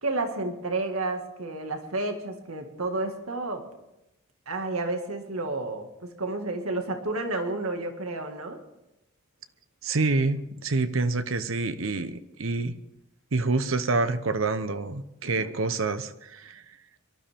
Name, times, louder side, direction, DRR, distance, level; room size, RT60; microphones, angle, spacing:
voice 1, 0.0-3.7 4.5-8.6 15.2-15.5, right 2 dB, 90° right, 5 dB, 1.9 m, -31 dB
voice 2, 9.8-12.7 13.3-16.8, right 3 dB, 65° right, 11 dB, 0.9 m, -27 dB
24.0 x 13.0 x 3.6 m, 0.90 s
head